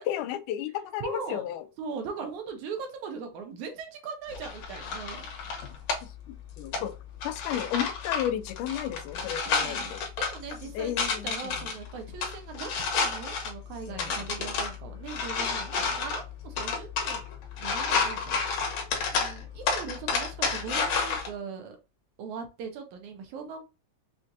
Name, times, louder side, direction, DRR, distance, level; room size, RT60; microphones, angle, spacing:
voice 1, 0.0-1.6 6.6-7.0 7.2-10.1 10.7-11.6 13.9-14.2, left 11 dB, 90° left, 2.1 m, -33 dB
voice 2, 1.0-1.5 1.8-5.3 7.5-7.7 9.5-17.2 17.6-18.4 19.1-21.8 22.2-23.6, right 5 dB, 80° right, 2.2 m, -40 dB
sound 1, 4.3-21.3, left 5 dB, 70° left, 2.2 m, -31 dB
5.8 x 2.5 x 2.5 m
omnidirectional pair, 3.5 m